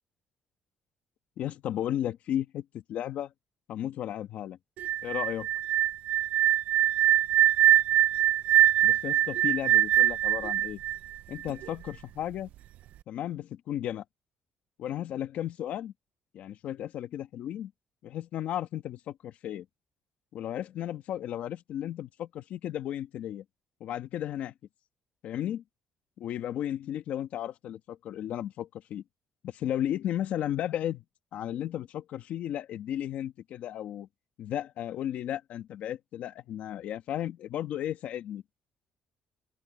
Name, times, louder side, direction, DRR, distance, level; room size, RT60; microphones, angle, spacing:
voice 1, 1.4-3.3 3.7-4.6 5.0-5.5 8.8-10.8 11.3-12.5 13.1-14.0 14.8-15.9 16.3-17.7 18.0-19.6 20.3-23.4 23.8-24.5 25.2-25.6 26.2-29.0 29.4-31.0 31.3-34.1 34.4-38.4, left 11 dB, 65° left, 1.5 m, -34 dB
sound 1, 4.8-11.7, right 12 dB, 70° right, 0.4 m, -23 dB
open air
cardioid pair, 155°, 3 cm